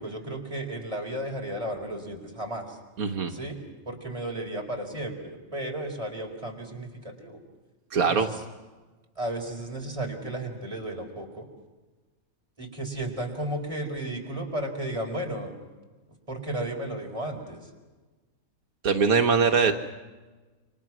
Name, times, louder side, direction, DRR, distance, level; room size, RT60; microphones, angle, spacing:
voice 1, 0.0-2.8 3.3-3.6 3.9-7.4 8.1-8.4 9.2-11.5 12.6-15.5 16.3-17.7, right 1 dB, 20° right, 0 dB, 4.5 m, -34 dB
voice 2, 3.0-3.3 7.9-8.3 18.8-19.7, right 5 dB, 75° right, 4 dB, 1.6 m, -22 dB
29.0 x 25.5 x 6.1 m, 1.3 s
omnidirectional pair, 1.5 m